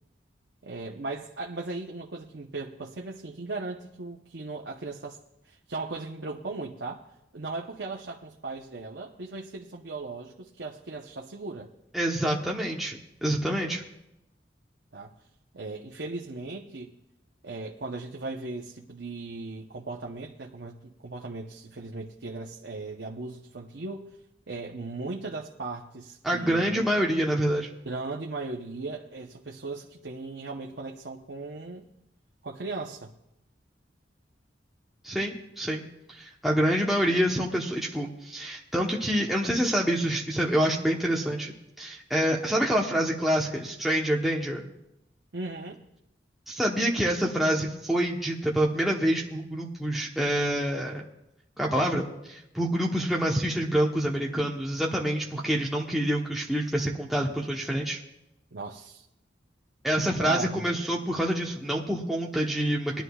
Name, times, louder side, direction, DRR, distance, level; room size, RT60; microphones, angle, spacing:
voice 1, 0.6-5.2 5.4-7.0 7.3-11.7 14.9-15.1 15.5-16.9 17.4-24.2 24.5-26.9 27.8-31.8 32.4-33.1 45.3-45.8 58.5-59.0 60.2-60.8, right 3 dB, 65° right, 0 dB, 0.8 m, -37 dB
voice 2, 11.9-13.8 26.2-27.7 35.0-35.8 36.2-41.5 41.8-44.6 46.5-51.0 51.6-58.0 59.8-63.0, equal, ahead, -3 dB, 0.9 m, -27 dB
21.0 x 11.0 x 2.3 m, 0.86 s
head